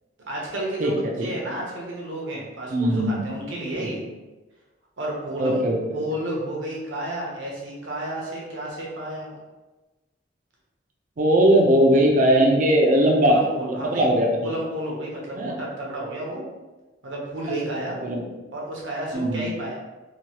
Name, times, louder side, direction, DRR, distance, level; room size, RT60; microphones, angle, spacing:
voice 1, 0.3-4.0 5.0-5.6 5.9-9.4 13.3-14.1 14.4-16.4 17.0-18.0 18.5-19.8, right 1 dB, 80° right, -3 dB, 0.9 m, -31 dB
voice 2, 0.8-1.3 2.7-3.2 3.8-3.9 5.4-5.8 11.2-14.3 15.4-15.5 18.0-18.2 19.1-19.5, right 1 dB, 45° right, 0 dB, 0.4 m, -19 dB
3.0 x 2.3 x 2.8 m, 1.1 s
head